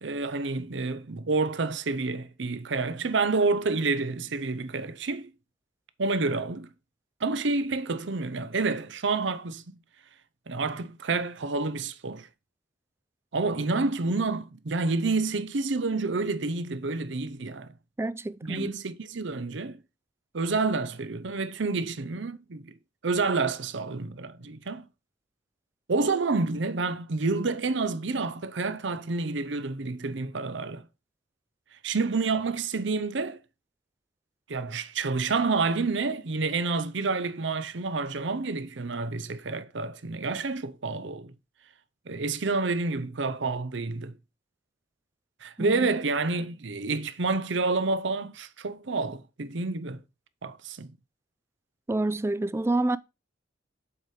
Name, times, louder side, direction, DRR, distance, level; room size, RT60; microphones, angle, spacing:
voice 1, 0.0-5.3 6.0-6.7 7.2-9.6 10.5-12.3 13.3-17.7 18.4-19.8 20.3-22.7 23.0-24.9 25.9-30.8 31.8-33.4 34.5-41.3 42.1-44.1 45.4-50.0 50.4-50.9, right 3 dB, 65° right, 0.7 m, -29 dB
voice 2, 18.0-18.8 45.6-45.8 51.9-53.0, right 2 dB, 15° right, 0.3 m, -28 dB
7.2 x 4.8 x 4.9 m
head